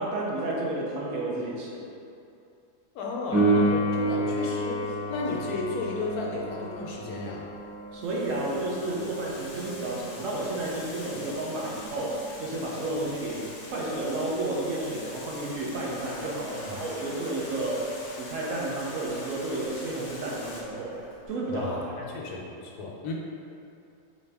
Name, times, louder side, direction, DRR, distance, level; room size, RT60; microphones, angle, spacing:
voice 1, 0.0-1.8 7.9-17.9 18.2-21.0 21.3-22.0, right 2 dB, 65° right, -4 dB, 0.9 m, -31 dB
voice 2, 2.9-7.5 16.6-16.8 21.5-23.1, left 3 dB, 90° left, -2 dB, 1.2 m, -34 dB
Piano, 3.3-13.7 21.3-21.4, right 1 dB, 5° left, 0.7 m, -31 dB
Water, 8.0-20.6, left 2 dB, 65° left, 0.9 m, -44 dB
Cheering / Applause, 16.0-21.8, equal, 85° right, 1.5 m, -48 dB
4.2 x 2.6 x 3.3 m, 2.6 s
omnidirectional pair, 1.6 m